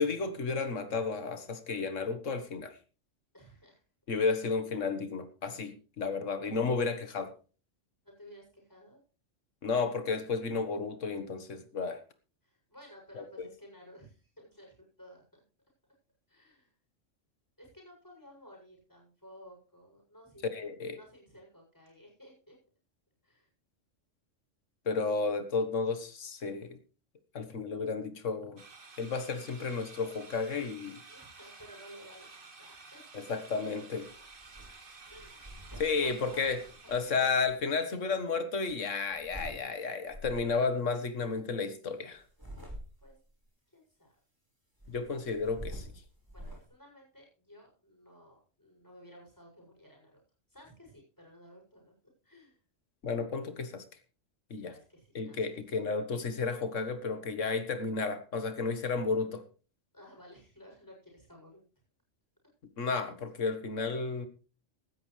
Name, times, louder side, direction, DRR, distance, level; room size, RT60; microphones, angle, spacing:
voice 1, 0.0-2.8 4.1-7.3 9.6-12.0 13.2-13.5 20.5-21.0 24.8-26.8 27.3-28.6 29.0-31.0 33.1-34.0 35.8-36.6 36.9-42.2 44.9-45.9 53.0-53.8 54.5-54.7 55.1-59.4 62.8-64.3, left 4 dB, 75° left, 10 dB, 1.8 m, -32 dB
voice 2, 3.3-3.8 8.0-9.0 12.4-15.4 16.3-16.7 17.6-20.6 20.9-22.6 23.2-23.5 31.1-33.2 34.1-34.2 35.1-35.7 36.0-36.5 36.8-37.3 37.6-38.2 43.0-43.2 43.7-44.2 46.3-50.2 50.5-51.9 52.2-52.6 54.5-55.4 59.9-61.6, equal, 15° left, -1 dB, 7.6 m, -55 dB
sound 1, 28.6-37.4, right 4 dB, 45° right, 1.7 m, -52 dB
sound 2, 34.4-34.7 35.1-37.6 38.7-39.6 40.1-40.6 42.2-43.2 44.8-46.6, right 1 dB, 15° right, 4.9 m, -46 dB
16.0 x 13.0 x 3.3 m, 0.37 s
omnidirectional pair, 1.3 m